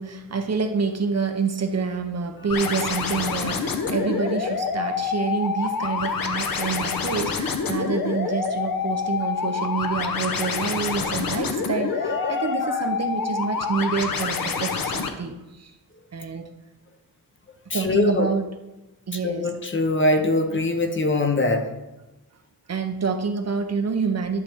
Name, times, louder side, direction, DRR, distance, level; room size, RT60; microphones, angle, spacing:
voice 1, 0.0-15.7 16.1-16.5 17.7-18.4 19.1-19.5 22.7-24.4, right 5 dB, 45° right, 7 dB, 0.6 m, -27 dB
sound 1, 2.5-15.1, left 5 dB, 70° left, 0.9 m, -27 dB
voice 2, 12.0-12.8 17.7-18.3 19.2-21.7, left 2 dB, 35° left, 6 dB, 0.7 m, -23 dB
11.5 x 6.6 x 3.5 m, 0.99 s
wide cardioid pair, 175°, 37 cm